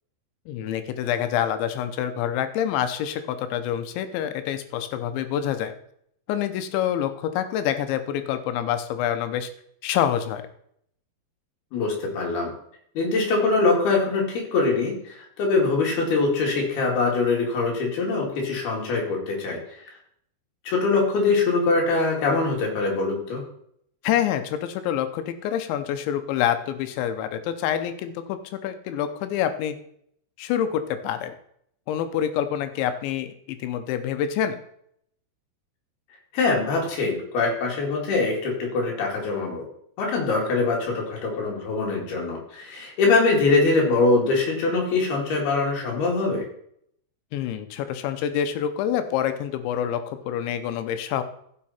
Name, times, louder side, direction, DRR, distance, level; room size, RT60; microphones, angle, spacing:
voice 1, 0.5-5.7 6.3-9.5 9.8-10.4 24.0-29.8 30.4-31.3 31.9-34.6 47.3-51.2, left 10 dB, 90° left, 9 dB, 3.2 m, -27 dB
voice 2, 11.7-12.5 13.0-19.9 20.7-23.4 36.3-39.6 40.0-46.4, left 3 dB, 65° left, -1 dB, 4.3 m, -23 dB
15.5 x 6.4 x 4.3 m, 0.69 s
omnidirectional pair, 5.1 m